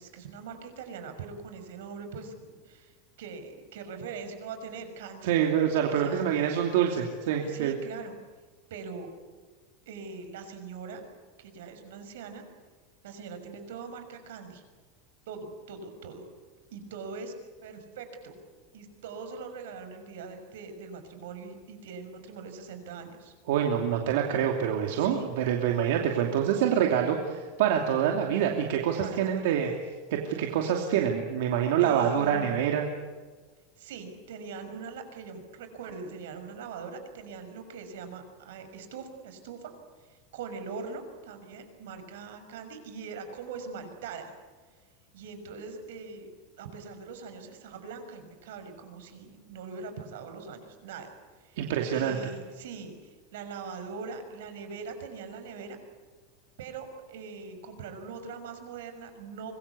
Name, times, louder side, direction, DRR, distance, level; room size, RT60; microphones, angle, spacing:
voice 1, 0.0-5.4 5.9-6.5 7.4-8.1 8.7-9.1 9.9-11.0 11.4-12.4 13.0-14.6 15.3-16.2 16.7-17.3 17.6-18.3 18.7-23.3 25.0-25.3 29.0-29.8 31.8-32.5 33.8-39.7 40.0-44.3 45.1-46.3 46.6-51.6 51.9-55.8 56.6-59.5, right 5 dB, 85° right, 7 dB, 6.0 m, -42 dB
voice 2, 5.2-7.7 23.5-29.7 30.1-32.9 51.6-52.2, right 9 dB, 65° right, 2 dB, 2.6 m, -26 dB
25.0 x 22.0 x 8.4 m, 1.4 s
supercardioid pair, 170°, 0 cm